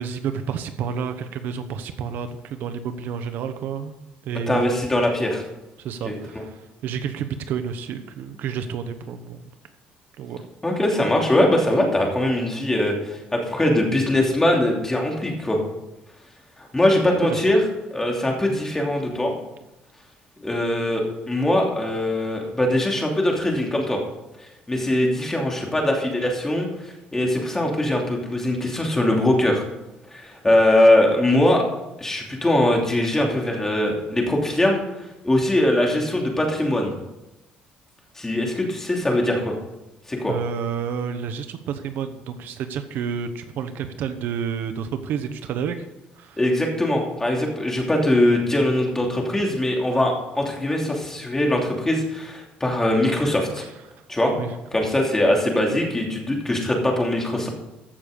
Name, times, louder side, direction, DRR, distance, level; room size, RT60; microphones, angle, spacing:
voice 1, 0.0-3.9 4.2-4.7 5.8-9.4 10.2-10.4 17.0-17.4 40.3-45.9 46.2-46.4 53.6-53.7 54.3-54.6, right 7 dB, 70° right, 9 dB, 1.0 m, -30 dB
voice 2, 4.5-5.4 6.0-6.1 10.6-15.6 16.6-17.6 17.9-19.4 20.4-24.0 24.4-29.6 30.1-31.6 32.0-36.9 38.2-39.5 40.1-40.3 46.4-53.6 54.1-54.3 54.7-57.5, left 1 dB, 15° left, 0 dB, 2.8 m, -21 dB
15.0 x 6.7 x 5.3 m, 0.96 s
cardioid pair, 120°, 3 cm